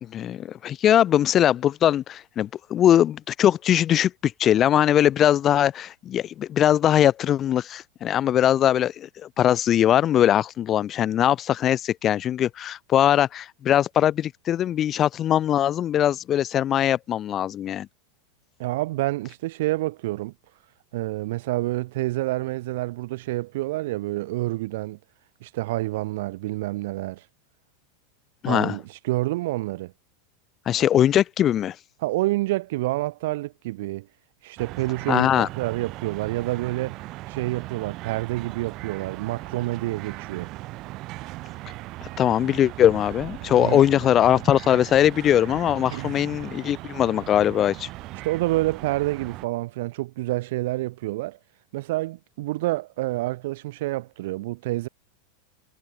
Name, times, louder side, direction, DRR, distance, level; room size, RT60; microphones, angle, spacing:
voice 1, 0.0-17.9 28.4-28.8 30.7-31.7 35.1-35.5 42.2-47.9, left 11 dB, 30° left, 0.8 m, -21 dB
voice 2, 18.6-20.3 20.9-25.0 25.4-27.2 28.5-29.9 32.0-34.1 34.4-37.0 37.3-40.5 43.6-43.8 45.9-46.1 48.2-51.4 51.7-54.9, right 18 dB, 70° right, 3.8 m, -28 dB
sound 1, 34.6-49.5, right 19 dB, 45° right, 7.3 m, -38 dB
supercardioid pair, 135°, 0 cm